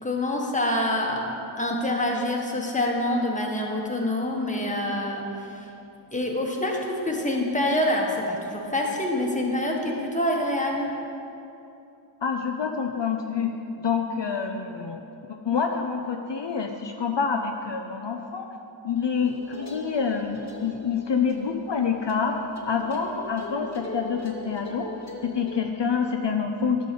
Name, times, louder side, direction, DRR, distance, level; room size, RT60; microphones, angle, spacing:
voice 1, 0.0-5.7 6.1-10.9, left 1 dB, 15° left, -1 dB, 1.3 m, -26 dB
voice 2, 12.2-13.5 13.8-15.0 15.4-18.5 18.8-22.4 22.7-24.9 25.2-26.8, left 6 dB, 65° left, 3 dB, 0.6 m, -27 dB
sound 1, 19.2-25.6, equal, 35° left, 1.1 m, -39 dB
11.0 x 3.9 x 6.7 m, 2.8 s
wide cardioid pair, 40°, 47 cm